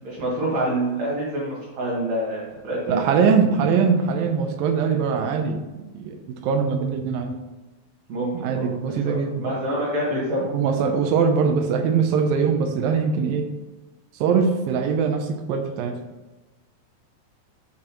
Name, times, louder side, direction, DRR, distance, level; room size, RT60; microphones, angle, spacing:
voice 1, 0.0-3.1 8.1-8.7 9.0-10.6, right 1 dB, 55° right, -7 dB, 2.7 m, -26 dB
voice 2, 2.9-7.3 8.3-9.4 10.4-13.5 14.1-16.0, right 6 dB, 80° right, 5 dB, 2.5 m, -22 dB
8.6 x 7.5 x 3.0 m, 1.1 s
omnidirectional pair, 4.2 m